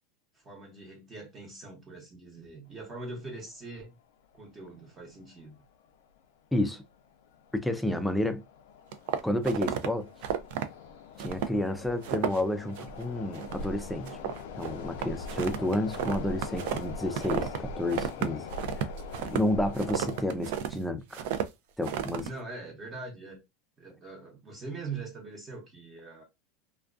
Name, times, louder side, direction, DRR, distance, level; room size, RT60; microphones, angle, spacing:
voice 1, 0.3-4.0 4.3-5.6 22.2-23.4 23.8-26.2, right 3 dB, 25° right, 0.8 m, -42 dB
sound 1, 3.4-3.5 3.7-3.8 4.6-4.8 5.1-5.2 5.8-6.2 6.6-20.3, left 3 dB, 75° left, 0.4 m, -42 dB
voice 2, 6.5-6.8 7.5-8.4 9.2-10.1 11.2-14.1 14.5-18.5 19.3-21.2 21.8-22.3, left 1 dB, 5° left, 0.4 m, -30 dB
sound 2, 8.9-9.9 10.2-10.6 11.2-11.6 11.8-12.4 12.8-13.0 13.3-13.8 14.1-17.6 17.9-20.7 21.1-21.5 21.8-22.3, right 9 dB, 65° right, 0.4 m, -32 dB
2.3 x 2.2 x 2.3 m
supercardioid pair, 135°, 0 cm